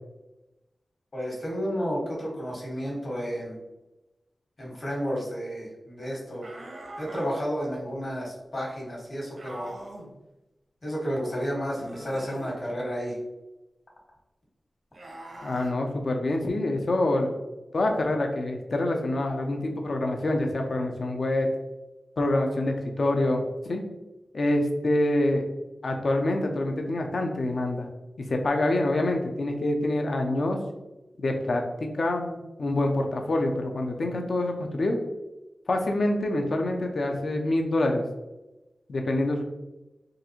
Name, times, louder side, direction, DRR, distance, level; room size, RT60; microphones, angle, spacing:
voice 1, 1.1-3.6 4.6-6.4 7.0-9.7 10.8-13.2, equal, 55° left, -4 dB, 1.3 m, -31 dB
sound 1, 6.4-7.3 9.4-10.1 11.7-12.6 14.9-15.7, right 1 dB, 70° right, 0.7 m, -42 dB
voice 2, 15.4-17.3 17.7-21.5 22.2-23.8 24.3-25.5 25.8-27.9 28.2-30.6 31.2-35.0 35.7-38.0 38.9-39.4, left 1 dB, 70° left, 3 dB, 0.5 m, -26 dB
3.8 x 2.4 x 2.8 m, 1.0 s
cardioid pair, 55°, 0 cm